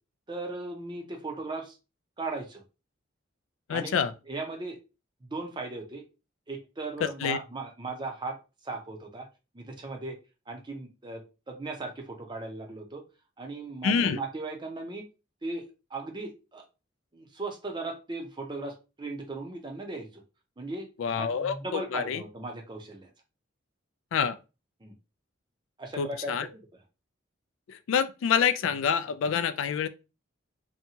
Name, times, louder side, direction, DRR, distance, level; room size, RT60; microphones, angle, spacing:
voice 1, 0.3-1.8 2.2-2.6 3.7-4.0 4.3-4.8 5.2-6.0 6.5-9.3 9.5-10.2 10.5-13.0 13.4-15.0 15.4-15.6 15.9-16.6 17.1-20.2 20.6-20.9 21.2-23.1 24.8-24.9 25.8-26.8, right 3 dB, 25° right, 0.6 m, -37 dB
voice 2, 3.7-4.1 7.2-7.4 13.8-14.2 21.0-22.2 24.1-24.4 26.0-26.5 27.7-29.9, left 7 dB, 75° left, 0.3 m, -27 dB
2.7 x 2.2 x 2.7 m
head